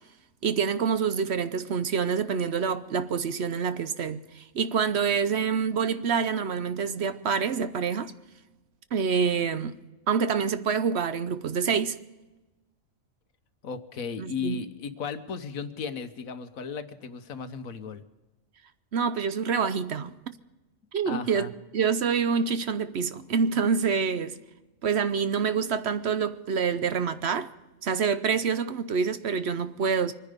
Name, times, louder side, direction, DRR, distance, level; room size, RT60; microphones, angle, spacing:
voice 1, 0.4-8.1 8.9-9.7 10.1-12.0 14.2-14.6 18.9-20.2 20.9-24.4 24.8-27.5 27.8-30.1, right 6 dB, 55° right, 0.9 m, -27 dB
voice 2, 13.6-18.0 21.1-21.5, left 6 dB, 80° left, 1.4 m, -35 dB
24.0 x 10.0 x 5.1 m
omnidirectional pair, 1.4 m